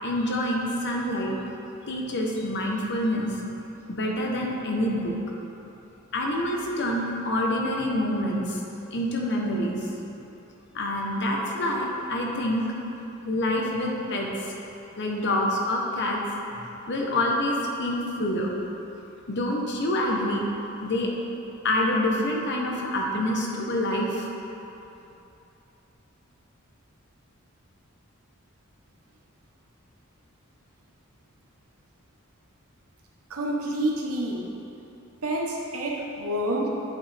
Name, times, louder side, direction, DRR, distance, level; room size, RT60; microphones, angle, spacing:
voice 1, 0.0-1.4 1.9-3.4 3.9-5.1 6.1-8.6 8.9-9.9 10.7-12.7 13.2-14.5 15.0-16.2 16.6-18.5 19.3-20.4 20.8-21.1 21.6-24.3, left 1 dB, 55° left, -1 dB, 1.0 m, -27 dB
voice 2, 33.3-34.4 35.2-36.7, right 1 dB, 85° right, -1 dB, 1.0 m, -28 dB
9.1 x 5.3 x 3.4 m, 2.9 s
head